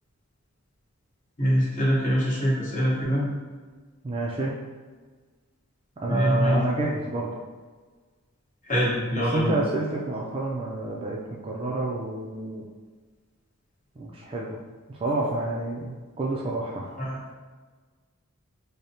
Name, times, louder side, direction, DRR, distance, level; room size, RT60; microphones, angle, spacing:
voice 1, 1.4-3.3 6.1-6.6 8.7-9.6 17.0-17.2, equal, 35° left, -7 dB, 1.1 m, -24 dB
voice 2, 4.0-4.5 6.0-7.4 9.2-12.6 14.0-14.6 14.9-16.9, right 2 dB, 25° right, -3 dB, 0.3 m, -29 dB
4.9 x 2.0 x 2.7 m, 1.4 s
head